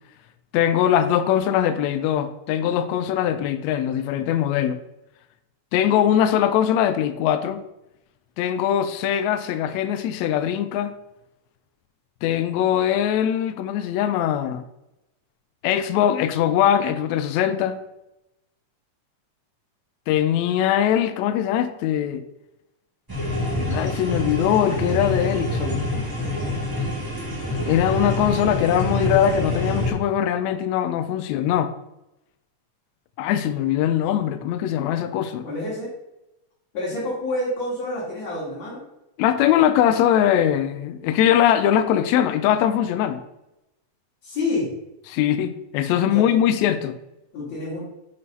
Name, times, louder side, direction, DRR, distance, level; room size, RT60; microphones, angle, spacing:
voice 1, 0.5-4.8 5.7-7.6 8.4-10.9 12.2-14.6 15.6-17.8 20.1-22.2 23.6-25.9 27.7-31.7 33.2-35.5 39.2-43.2 45.1-47.0, left 10 dB, 85° left, 10 dB, 1.6 m, -21 dB
sound 1, 23.1-29.9, left 1 dB, 10° right, 1.7 m, -26 dB
voice 2, 35.4-35.9 36.7-38.8 44.2-44.7 46.0-46.3 47.3-47.8, left 2 dB, 55° left, -10 dB, 3.9 m, -28 dB
7.8 x 4.0 x 5.4 m, 0.89 s
omnidirectional pair, 3.8 m